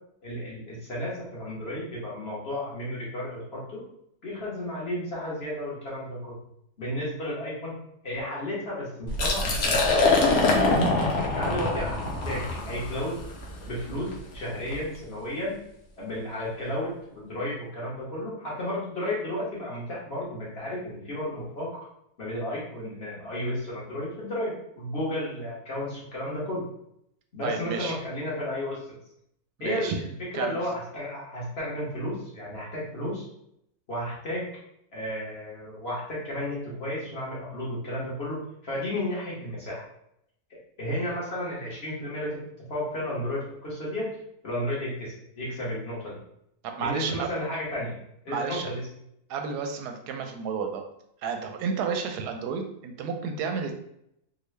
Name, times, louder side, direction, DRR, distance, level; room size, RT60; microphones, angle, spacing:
voice 1, 0.2-3.8 4.2-6.3 6.8-7.7 8.0-10.9 11.3-13.1 13.7-15.6 16.0-21.7 22.2-26.6 27.3-28.8 29.6-33.2 33.9-34.4 34.9-38.4 38.6-39.8 40.5-42.4 42.7-44.1 44.4-46.2 46.8-48.0 48.2-48.9, left 1 dB, 45° left, -6 dB, 1.3 m, -33 dB
Liquid, 9.1-14.8, left 3 dB, 60° left, 0.9 m, -25 dB
voice 2, 27.4-28.0 29.6-30.0 30.3-30.6 46.6-47.3 48.3-48.7 49.3-50.8 51.2-53.7, right 5 dB, 90° right, 5 dB, 1.1 m, -31 dB
3.7 x 2.2 x 3.2 m, 0.74 s
omnidirectional pair, 1.7 m